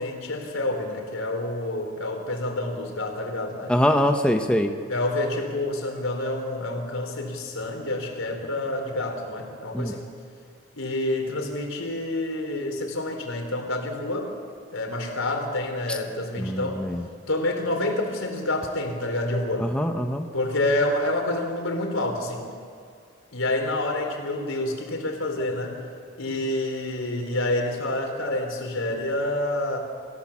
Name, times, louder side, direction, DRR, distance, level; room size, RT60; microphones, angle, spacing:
voice 1, 0.0-3.7 4.9-10.1 10.7-14.3 14.7-16.8 17.3-19.7 20.3-22.5 23.3-25.8 26.2-29.8, left 1 dB, 75° left, 3 dB, 4.1 m, -28 dB
voice 2, 3.7-4.7 9.7-9.9 16.4-17.0 19.6-20.3, equal, 5° left, 4 dB, 0.9 m, -23 dB
26.5 x 16.5 x 7.4 m, 2.2 s
head